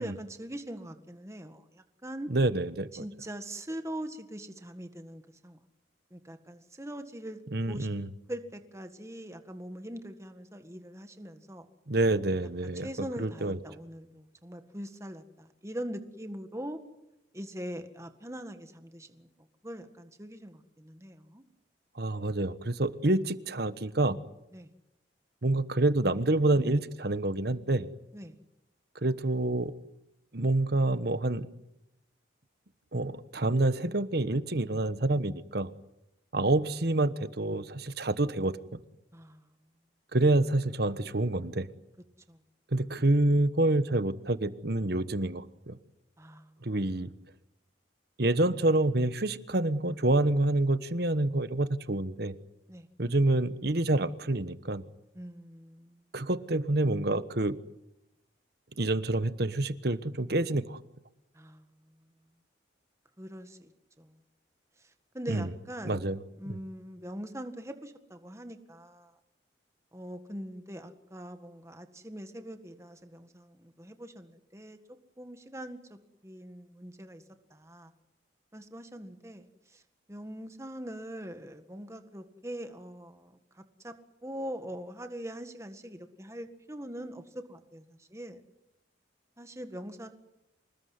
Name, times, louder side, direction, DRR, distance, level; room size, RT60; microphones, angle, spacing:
voice 1, 0.0-2.3 2.9-5.6 6.1-7.4 7.7-7.9 8.3-11.7 12.6-16.8 17.3-19.3 19.6-21.4 24.5-24.7 28.1-28.3 39.1-39.5 42.3-42.4 46.2-46.7 52.7-52.9 55.1-56.0 61.3-61.7 63.2-63.7 64.0-64.1 65.1-66.1 66.4-69.1 69.9-74.8 75.2-76.0 76.2-77.2 77.5-77.9 78.5-79.8 80.1-83.9 84.2-88.4 89.4-90.1, equal, 15° right, 8 dB, 1.8 m, -42 dB
voice 2, 2.3-3.0 7.5-8.1 11.9-12.9 13.2-13.6 21.9-24.2 25.4-27.9 29.0-29.7 30.3-31.5 32.9-35.7 36.3-38.8 40.1-41.7 42.7-45.8 46.6-47.1 48.2-52.3 53.0-54.8 56.1-57.6 58.8-60.8 65.3-65.5 65.8-66.2 66.4-66.6, right 2 dB, 55° right, 13 dB, 1.2 m, -27 dB
26.5 x 20.0 x 9.6 m, 0.90 s
head